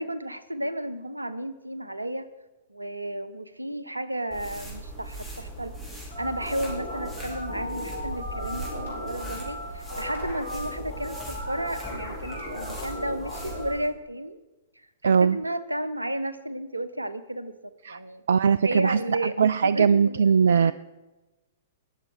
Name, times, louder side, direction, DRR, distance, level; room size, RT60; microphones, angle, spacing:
voice 1, 0.0-2.3 2.7-5.8 6.2-14.4 14.8-17.6 17.9-18.2 18.6-20.7, right 1 dB, 85° right, 15 dB, 0.9 m, -33 dB
sound 1, 4.3-13.9, right 1 dB, 10° right, 4.3 m, -39 dB
sound 2, 6.1-13.7, left 1 dB, 80° left, 5.6 m, -37 dB
voice 2, 15.0-15.4 17.8-18.0 18.3-20.7, right 6 dB, 65° right, 17 dB, 0.3 m, -20 dB
21.0 x 7.5 x 4.7 m, 1.1 s
figure-of-eight pair, 105°, 0 cm